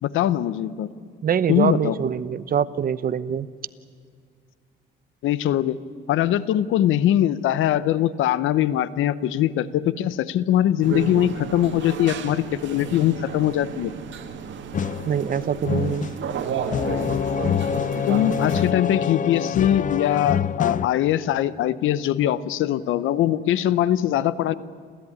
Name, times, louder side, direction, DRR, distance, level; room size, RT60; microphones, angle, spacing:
voice 1, 0.0-0.9 1.5-1.9 5.2-5.8 6.1-13.9 18.1-24.5, left 12 dB, 85° left, 17 dB, 0.9 m, -22 dB
voice 2, 1.2-3.5 15.0-16.1, right 8 dB, 45° right, 15 dB, 0.8 m, -24 dB
sound 1, 10.8-18.7, right 7 dB, 70° right, 2.1 m, -33 dB
sound 2, 14.7-20.9, left 8 dB, 40° left, 0.6 m, -26 dB
29.5 x 14.0 x 9.6 m, 2.1 s
cardioid pair, 90°, 20 cm